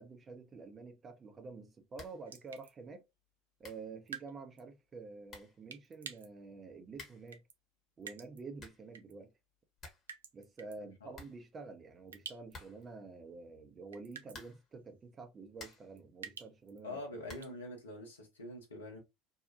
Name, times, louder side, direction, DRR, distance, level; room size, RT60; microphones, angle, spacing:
voice 1, 0.0-3.1 3.6-7.4 8.0-9.3 10.3-17.0, right 4 dB, 30° right, 0.7 m, -49 dB
sound 1, 1.9-2.3 2.6-2.7 3.3-3.4 3.6-3.9 4.9-5.0 5.3-5.6 6.9-7.4 8.3-8.9 9.3-9.4 9.6-10.1 10.4-10.5 10.8-10.9 11.1-11.9 12.5-13.0 14.3-14.8 15.2-16.0 17.2-17.6, left 3 dB, 35° left, 1.1 m, -53 dB
sound 2, 2.3-2.7 4.1-4.3 4.6-4.7 5.7-6.3 7.3-7.5 8.0-8.4 8.9-9.1 10.1-10.8 12.1-12.5 12.8-12.9 13.9-14.4 15.6-16.8 17.3-17.5, right 7 dB, 75° right, 0.3 m, -48 dB
voice 2, 10.8-11.2 16.8-19.0, left 1 dB, 80° left, 0.9 m, -45 dB
2.7 x 2.2 x 2.6 m
figure-of-eight pair, 65°, 0 cm